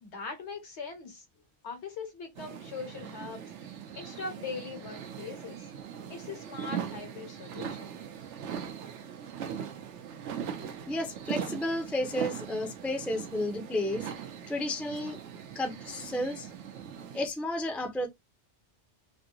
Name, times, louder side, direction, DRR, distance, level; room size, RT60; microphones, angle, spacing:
voice 1, 0.0-1.2 1.6-5.7 6.1-7.9, left 4 dB, 75° left, 1.4 m, -41 dB
sound 1, 2.4-17.3, right 8 dB, 90° right, 0.9 m, -40 dB
voice 2, 10.9-14.1 14.5-15.2 15.5-16.5 17.1-18.1, left 1 dB, ahead, 0.4 m, -32 dB
3.3 x 2.6 x 2.7 m
omnidirectional pair, 1.2 m